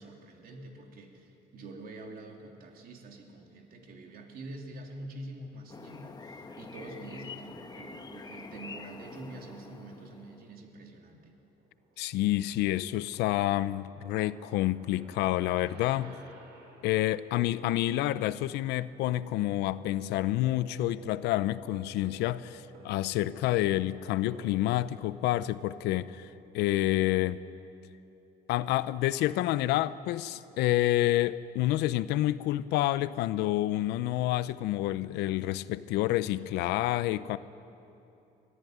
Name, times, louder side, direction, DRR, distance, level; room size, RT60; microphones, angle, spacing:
voice 1, 0.0-11.3, right 2 dB, 60° right, 3.1 m, -46 dB
sound 1, 5.7-10.5, left 4 dB, 25° left, 1.3 m, -46 dB
sound 2, 8.9-9.5 10.3-11.1 11.5-17.2 19.7-19.8 20.1-20.2 21.0-21.1 22.7-23.6 24.2-24.5, right 3 dB, 90° right, 5.3 m, -55 dB
voice 2, 12.0-16.2 16.8-26.3 26.5-27.4 28.5-37.4, left 15 dB, 90° left, 0.6 m, -28 dB
Wind instrument woodwind instrument, 19.0-26.6, right 4 dB, 45° right, 3.0 m, -53 dB
23.5 x 14.5 x 9.5 m
cardioid pair, 110°, 17 cm